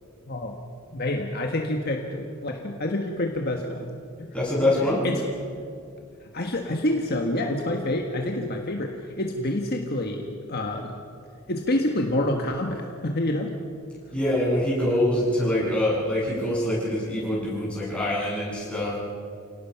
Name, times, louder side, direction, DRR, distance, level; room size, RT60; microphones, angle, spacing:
voice 1, 0.9-3.9 4.2-4.3 4.6-5.2 6.2-10.9 11.5-13.5, left 1 dB, 45° left, 2 dB, 1.5 m, -28 dB
voice 2, 4.3-5.0 14.1-19.0, left 1 dB, 5° left, -7 dB, 7.9 m, -24 dB
28.5 x 18.0 x 5.9 m, 2.4 s
head